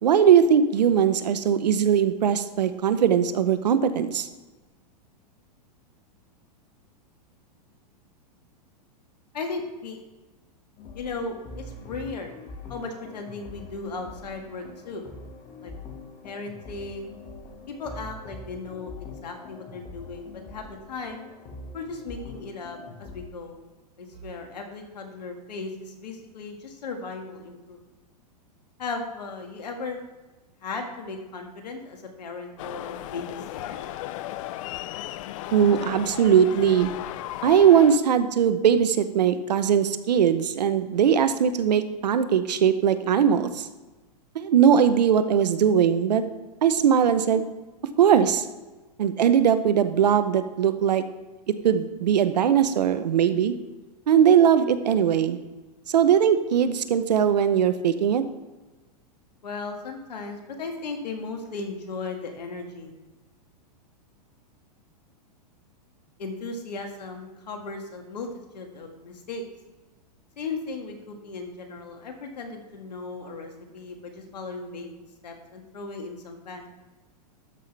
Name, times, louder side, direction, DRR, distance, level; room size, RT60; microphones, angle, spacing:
voice 1, 0.0-4.3 35.5-36.9 37.4-43.7 44.3-46.2 46.6-47.5 48.0-48.4 49.0-51.0 51.6-53.5 54.1-55.4 55.9-58.2, right 8 dB, 80° right, 11 dB, 0.8 m, -20 dB
voice 2, 9.3-10.0 10.9-12.4 12.7-15.0 15.6-15.7 16.2-17.2 17.7-21.2 21.7-23.6 24.0-27.8 28.8-30.0 30.6-33.8 59.4-62.9 66.2-68.3 68.5-69.4 70.4-74.9 75.2-76.7, left 3 dB, 80° left, 4 dB, 1.8 m, -36 dB
sound 1, 10.8-23.2, left 2 dB, 35° left, 1.8 m, -43 dB
sound 2, 32.6-38.0, left 14 dB, 50° left, 0.5 m, -36 dB
12.5 x 5.7 x 3.4 m, 1.2 s
hypercardioid pair, 115°, 21 cm